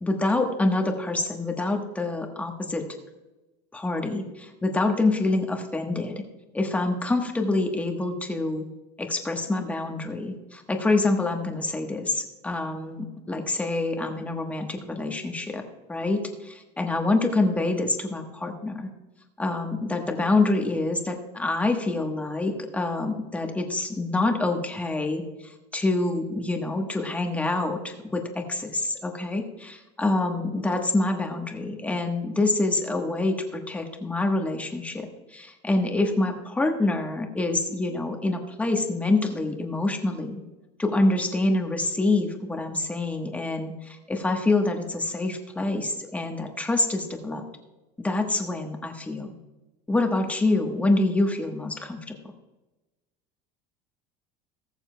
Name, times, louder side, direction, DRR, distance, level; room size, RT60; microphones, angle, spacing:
voice 1, 0.0-2.8 3.7-6.2 6.5-8.7 9.0-15.6 15.9-18.9 19.4-40.4 40.8-47.4 48.0-49.4 49.9-52.1, left 2 dB, 10° left, 3 dB, 1.2 m, -26 dB
20.0 x 6.9 x 2.3 m, 1.1 s
cardioid pair, 150°, 15 cm